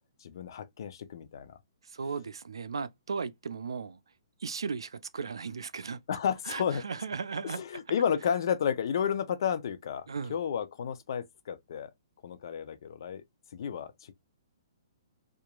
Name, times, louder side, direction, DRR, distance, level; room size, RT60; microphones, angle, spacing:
voice 1, 0.2-1.6 6.1-6.8 7.4-11.9 12.2-13.2 13.5-14.1, left 8 dB, 60° left, 0.5 m, -32 dB
voice 2, 1.8-4.0 4.4-6.0 6.5-7.6 10.1-10.3, right 5 dB, 85° right, 0.3 m, -36 dB
2.8 x 2.4 x 2.2 m
hypercardioid pair, 130°, 2 cm